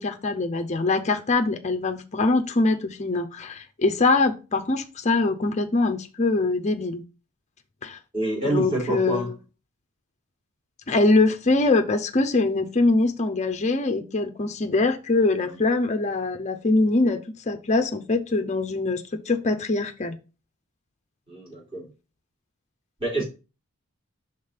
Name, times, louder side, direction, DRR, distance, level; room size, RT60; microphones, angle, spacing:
voice 1, 0.0-7.0 7.8-8.0 8.4-9.3 10.9-17.2 17.5-20.2, left 3 dB, 30° left, 7 dB, 0.6 m, -23 dB
voice 2, 8.1-9.3 15.4-15.6 21.3-21.9 23.0-23.2, right 1 dB, 25° right, -5 dB, 3.5 m, -27 dB
5.2 x 3.6 x 5.6 m, 0.31 s
head